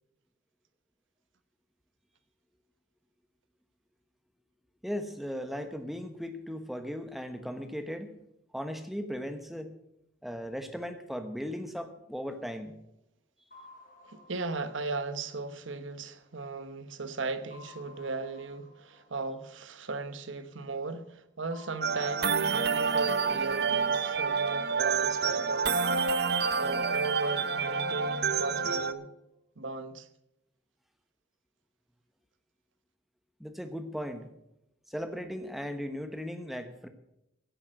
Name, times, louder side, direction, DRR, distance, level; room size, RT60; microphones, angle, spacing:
voice 1, 4.8-8.1 8.5-9.7 10.2-12.7 33.4-34.3 34.9-36.9, equal, ahead, 1.1 m, -37 dB
sound 1, 13.5-16.8 17.5-20.4 21.5-24.6 25.5-28.6, left 2 dB, 45° left, 2.5 m, -57 dB
voice 2, 14.0-25.9 26.6-29.1 29.6-30.1, right 3 dB, 80° right, 1.1 m, -37 dB
sound 2, 21.8-28.9, right 5 dB, 55° right, 0.7 m, -28 dB
15.5 x 8.7 x 6.4 m
head